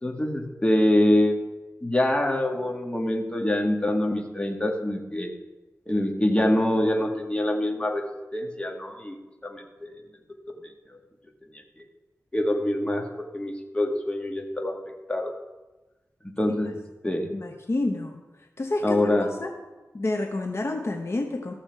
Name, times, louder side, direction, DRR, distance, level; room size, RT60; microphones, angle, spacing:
voice 1, 0.0-1.3 1.8-5.3 5.9-8.0 8.3-9.2 9.4-9.9 12.3-13.0 13.3-14.8 15.1-15.3 16.2-16.7 17.0-17.3 18.8-19.3, left 1 dB, 20° left, 2 dB, 1.7 m, -25 dB
voice 2, 17.3-18.2 18.6-19.5 19.9-21.5, left 2 dB, 50° left, 3 dB, 0.9 m, -29 dB
14.0 x 7.0 x 4.6 m, 1.1 s
wide cardioid pair, 65°, 6 cm